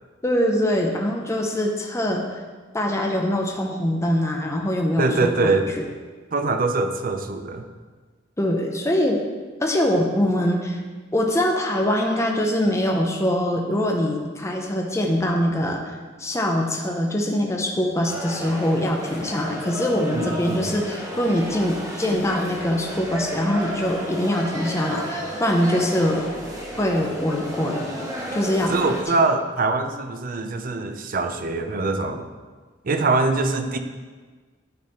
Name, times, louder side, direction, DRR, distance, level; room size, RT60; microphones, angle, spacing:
voice 1, 0.2-2.2 2.7-5.6 8.4-9.2 9.6-10.8 11.1-15.9 16.2-26.2 26.7-27.9 28.3-28.9, left 1 dB, 15° left, 1 dB, 0.7 m, -23 dB
voice 2, 5.0-5.7 6.3-7.7 20.1-20.7 28.7-32.3 32.8-33.8, right 3 dB, 45° right, 7 dB, 0.5 m, -23 dB
sound 1, 18.0-29.0, equal, 20° right, 1.0 m, -32 dB
10.5 x 4.1 x 4.2 m, 1.4 s
head